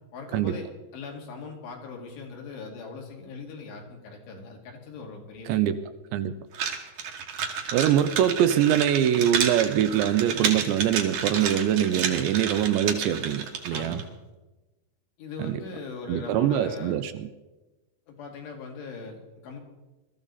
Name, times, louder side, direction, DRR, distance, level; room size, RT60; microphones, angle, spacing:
voice 1, 0.1-5.8 13.7-14.1 15.2-17.0 18.1-19.6, left 4 dB, 65° left, 1 dB, 4.3 m, -40 dB
voice 2, 5.5-5.8 6.1-6.3 7.7-14.0 15.4-15.6 16.1-17.3, right 10 dB, 80° right, 10 dB, 2.7 m, -23 dB
sound 1, 6.5-14.0, right 6 dB, 60° right, 2.0 m, -31 dB
21.5 x 13.5 x 4.0 m, 1.1 s
omnidirectional pair, 5.4 m